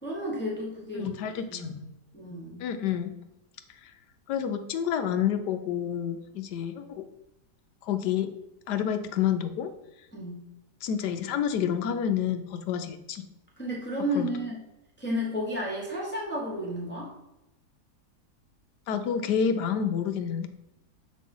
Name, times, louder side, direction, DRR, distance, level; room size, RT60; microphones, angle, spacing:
voice 1, 0.0-1.1 1.5-1.8 2.1-2.6 10.1-10.4 13.6-14.6 15.0-17.1, equal, 5° left, -3 dB, 1.3 m, -32 dB
voice 2, 0.9-1.8 2.6-3.1 3.8-3.9 4.3-7.1 7.8-8.3 8.7-9.7 10.8-13.2 14.1-14.3 18.9-20.5, left 8 dB, 80° left, 8 dB, 1.3 m, -29 dB
7.6 x 3.2 x 5.4 m, 0.91 s
omnidirectional pair, 1.8 m